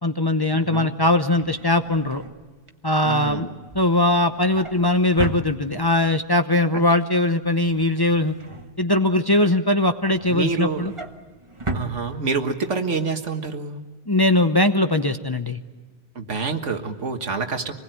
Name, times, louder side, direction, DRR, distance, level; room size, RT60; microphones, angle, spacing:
voice 1, 0.0-2.2 2.8-3.5 3.7-8.3 8.8-10.9 14.1-15.6, left 1 dB, 25° left, 7 dB, 0.8 m, -20 dB
voice 2, 0.5-0.9 3.0-3.5 6.7-6.8 10.3-10.9 11.7-13.8 16.2-17.7, right 4 dB, 85° right, 6 dB, 1.9 m, -27 dB
Drawer open or close, 1.3-6.1 6.5-6.8 7.1-9.3 9.7-12.7 13.1-13.3 13.5-13.6, right 2 dB, 25° right, 1.4 m, -37 dB
26.0 x 20.5 x 9.1 m, 1.4 s
omnidirectional pair, 1.2 m